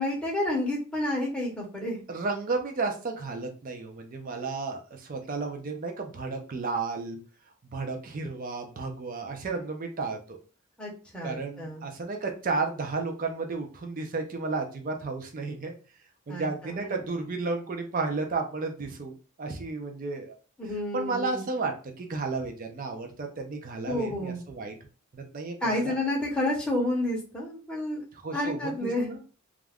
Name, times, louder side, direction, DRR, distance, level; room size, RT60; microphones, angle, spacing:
voice 1, 0.0-2.0 10.8-11.8 16.3-16.9 20.6-21.4 23.8-24.4 25.6-28.0 28.3-29.2, left 1 dB, 5° left, -4 dB, 0.7 m, -30 dB
voice 2, 2.1-7.2 7.7-10.4 11.2-15.7 16.3-20.3 20.6-24.7 25.1-26.0 28.2-29.2, right 3 dB, 40° right, 3 dB, 0.4 m, -33 dB
2.4 x 2.2 x 3.3 m, 0.37 s
head